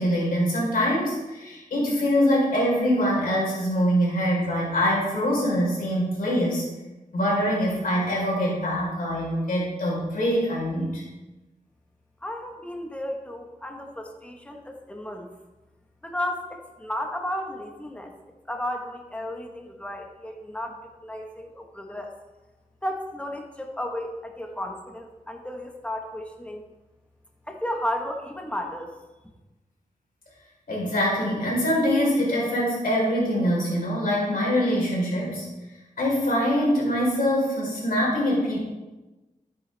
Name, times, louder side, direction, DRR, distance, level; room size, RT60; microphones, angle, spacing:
voice 1, 0.0-6.6 7.1-11.0 30.7-35.5 36.0-38.6, equal, 85° left, -4 dB, 4.3 m, -24 dB
voice 2, 12.2-15.3 16.0-18.1 18.5-22.1 22.8-26.6 27.5-28.9, left 1 dB, 10° left, 2 dB, 1.4 m, -33 dB
13.5 x 9.3 x 3.5 m, 1.1 s
wide cardioid pair, 105°, 14 cm